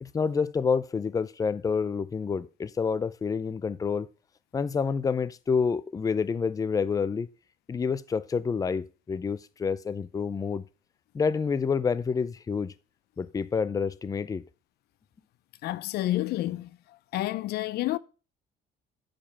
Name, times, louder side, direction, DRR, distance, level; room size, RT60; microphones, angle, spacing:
voice 1, 0.0-4.1 4.5-7.3 7.7-10.6 11.1-12.7 13.2-14.4, left 5 dB, 20° left, 0.5 m, -28 dB
voice 2, 15.6-16.7 17.1-18.0, left 15 dB, 75° left, 0.6 m, -29 dB
8.5 x 5.2 x 6.0 m
cardioid pair, 110°, 17 cm